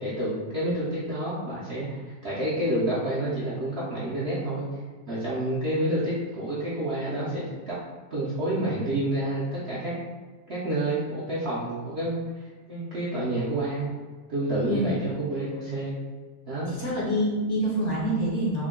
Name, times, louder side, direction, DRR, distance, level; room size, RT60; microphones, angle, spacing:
voice 1, 0.0-4.7 5.1-7.7 8.1-9.9 10.5-13.9 14.3-16.0 16.5-16.7, right 1 dB, 55° right, -9 dB, 0.8 m, -29 dB
voice 2, 16.7-18.7, equal, 55° left, -5 dB, 0.9 m, -27 dB
3.6 x 2.1 x 3.6 m, 1.4 s
omnidirectional pair, 1.7 m